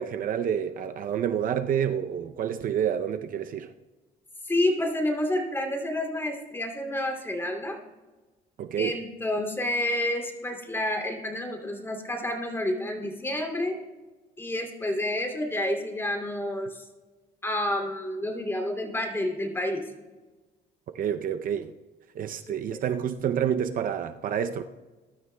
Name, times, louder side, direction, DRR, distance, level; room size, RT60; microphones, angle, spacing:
voice 1, 0.0-3.7 8.6-9.0 20.9-21.7 22.2-24.6, right 9 dB, 55° right, 0.6 m, -28 dB
voice 2, 4.4-7.8 8.8-13.7 14.4-16.8 17.4-19.9 22.5-22.8, left 1 dB, 15° left, 2.7 m, -29 dB
21.0 x 12.5 x 2.2 m
cardioid pair, 110°, 17 cm